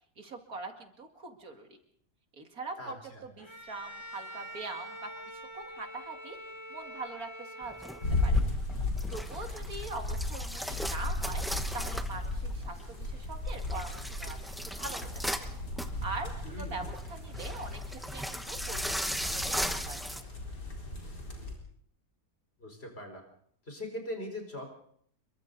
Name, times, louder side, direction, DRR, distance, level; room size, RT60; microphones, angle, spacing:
voice 1, 0.2-1.7 2.3-6.4 6.7-7.9 8.2-8.4 9.1-11.5 11.7-14.4 14.7-15.5 16.0-20.3, right 3 dB, 60° right, 4 dB, 2.7 m, -42 dB
voice 2, 2.8-3.2 16.5-16.8 22.6-23.2 23.7-24.7, left 1 dB, 35° left, 3 dB, 4.8 m, -41 dB
Bowed string instrument, 3.4-8.6, equal, 15° left, 1.8 m, -45 dB
sound 1, 7.6-20.2, equal, ahead, 1.0 m, -38 dB
sound 2, 8.0-21.5, left 2 dB, 80° left, 4.6 m, -35 dB
28.5 x 23.0 x 4.0 m, 0.64 s
omnidirectional pair, 1.7 m